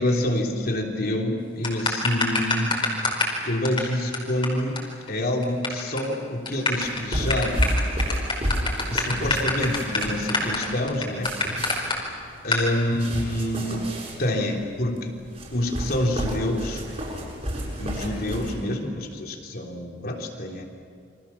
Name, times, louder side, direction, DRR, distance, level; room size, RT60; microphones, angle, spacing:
voice 1, 0.0-2.7 3.5-4.8 5.1-7.6 8.9-11.3 12.4-13.8 14.2-15.2 15.5-16.8 17.8-20.6, left 1 dB, 55° left, 1 dB, 3.5 m, -27 dB
sound 1, 1.6-3.4 3.6-3.8 4.1-4.2 4.4-4.5 4.8-4.9 5.1-5.7 6.0-6.1 6.5-12.0 12.5-12.6, left 3 dB, 30° left, 4.9 m, -25 dB
sound 2, 6.8-18.5, equal, 35° right, 7.6 m, -31 dB
29.0 x 25.5 x 7.2 m, 2.1 s
head